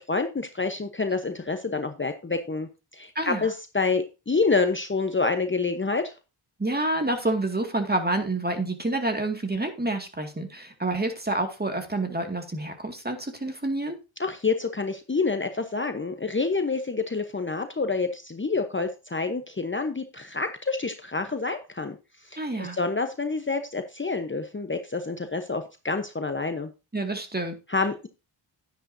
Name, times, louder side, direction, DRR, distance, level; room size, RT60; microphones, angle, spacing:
voice 1, 0.0-6.1 14.2-26.7 27.7-28.1, left 4 dB, 25° left, 7 dB, 1.0 m, -28 dB
voice 2, 3.2-3.5 6.6-14.0 22.4-22.8 26.9-27.5, right 2 dB, 20° right, 5 dB, 2.1 m, -28 dB
10.5 x 9.9 x 2.7 m, 0.29 s
cardioid pair, 65°, 49 cm